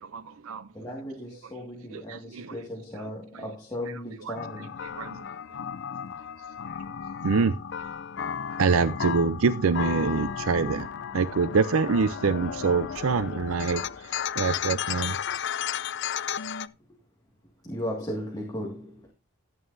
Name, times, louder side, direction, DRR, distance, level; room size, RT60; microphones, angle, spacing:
voice 1, 0.0-0.7 1.9-2.6 3.0-3.1 3.3-3.4 4.2-4.3 4.9-5.2 7.2-7.6 8.6-15.2, right 5 dB, 80° right, 0.5 m, -26 dB
voice 2, 0.7-4.8 17.6-19.1, equal, 20° left, 1.9 m, -36 dB
sound 1, 4.3-16.7, left 8 dB, 55° left, 0.4 m, -34 dB
14.0 x 9.1 x 2.6 m
head